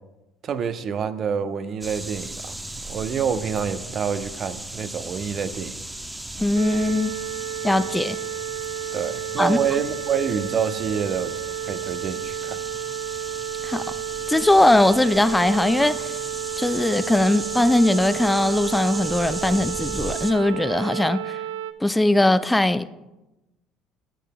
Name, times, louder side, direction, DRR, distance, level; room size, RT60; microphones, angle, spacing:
voice 1, 0.4-5.8 8.9-11.3 11.6-12.6, right 7 dB, 50° right, 11 dB, 0.6 m, -27 dB
sound 1, 1.8-20.3, right 1 dB, 10° right, 0.8 m, -36 dB
voice 2, 6.4-7.1 7.6-8.2 9.4-9.6 13.6-13.8 14.3-16.1 16.6-21.4 21.8-22.9, left 1 dB, 10° left, 14 dB, 0.4 m, -20 dB
sound 2, 6.5-21.7, right 10 dB, 85° right, 0.3 m, -32 dB
10.0 x 10.0 x 2.2 m, 1.0 s
hypercardioid pair, 65°, 0 cm